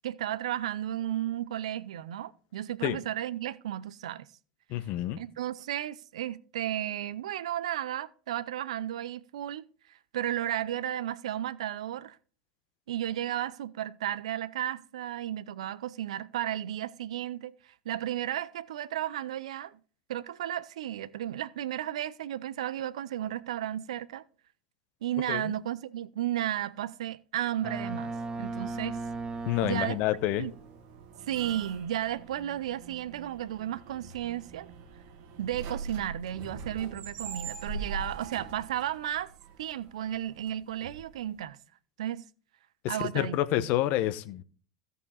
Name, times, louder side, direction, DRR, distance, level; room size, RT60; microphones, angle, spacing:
voice 1, 0.0-4.3 5.2-12.2 12.9-19.8 20.1-24.2 25.0-28.1 28.4-29.0 29.6-30.0 30.4-30.5 31.3-34.7 35.4-39.3 39.6-41.6 42.0-42.2 42.9-43.7, right 12 dB, 75° right, 0.6 m, -34 dB
voice 2, 4.7-5.2 25.3-25.5 29.5-30.5 42.8-44.4, left 14 dB, 55° left, 1.0 m, -28 dB
Boat Water vehicle, 27.6-30.3, right 3 dB, 25° right, 1.0 m, -36 dB
sound 1, 27.7-41.4, right 4 dB, 55° right, 2.0 m, -44 dB
16.0 x 5.6 x 4.1 m
hypercardioid pair, 80°, 3 cm